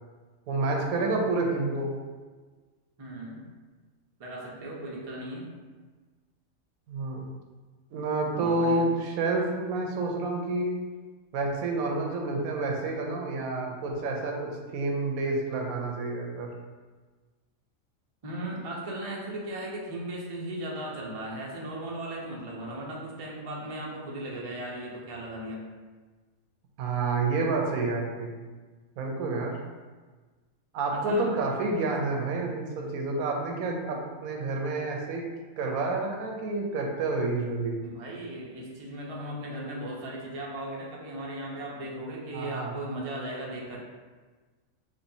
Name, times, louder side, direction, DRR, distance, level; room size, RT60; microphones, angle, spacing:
voice 1, 0.5-1.9 6.9-7.3 7.9-10.7 11.3-16.5 26.8-28.4 29.0-29.6 30.7-35.2 35.6-37.8 42.3-42.7, right 3 dB, 90° right, 1 dB, 1.1 m, -29 dB
voice 2, 3.0-3.4 4.2-5.5 8.3-8.9 18.2-25.7 30.9-31.3 37.8-43.8, right 1 dB, 40° right, -3 dB, 0.5 m, -37 dB
4.3 x 2.9 x 2.7 m, 1.4 s
omnidirectional pair, 1.5 m